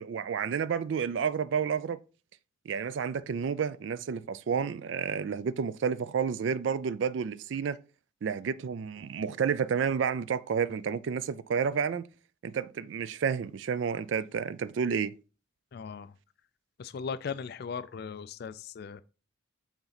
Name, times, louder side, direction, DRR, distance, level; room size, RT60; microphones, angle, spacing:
voice 1, 0.0-2.0 2.7-7.8 8.2-12.0 12.4-15.2, right 6 dB, 65° right, 0.3 m, -30 dB
voice 2, 15.7-16.1 16.8-19.0, left 6 dB, 55° left, 0.3 m, -38 dB
7.1 x 3.9 x 4.0 m
head